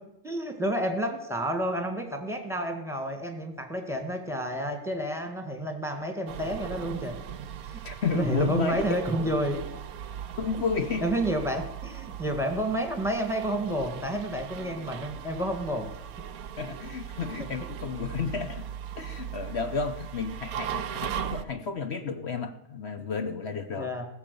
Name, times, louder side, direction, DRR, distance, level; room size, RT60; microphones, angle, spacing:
voice 1, 0.2-7.2 7.7-7.8 8.1-9.6 11.0-15.9 23.8-24.1, right 1 dB, ahead, 4 dB, 1.5 m, -30 dB
sound 1, 6.3-21.4, right 9 dB, 70° right, 1.1 m, -38 dB
voice 2, 7.8-8.9 10.4-11.0 16.6-18.7 19.0-23.9, left 5 dB, 50° left, 8 dB, 0.9 m, -32 dB
16.0 x 7.4 x 6.8 m, 0.88 s
omnidirectional pair, 1.7 m